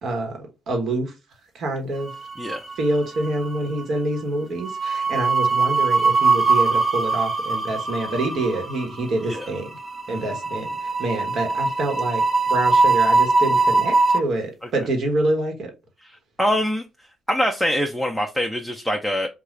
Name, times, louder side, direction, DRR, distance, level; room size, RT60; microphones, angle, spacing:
voice 1, 0.0-1.1 1.5-2.1 2.8-9.7 10.1-15.7, right 2 dB, 65° right, 1.3 m, -26 dB
sound 1, 2.1-2.9 3.2-3.4 4.6-14.2, right 3 dB, 35° right, 0.7 m, -21 dB
voice 2, 16.0-16.8 17.3-19.3, equal, 5° right, 0.5 m, -24 dB
3.8 x 2.3 x 3.2 m
cardioid pair, 90°, 0 cm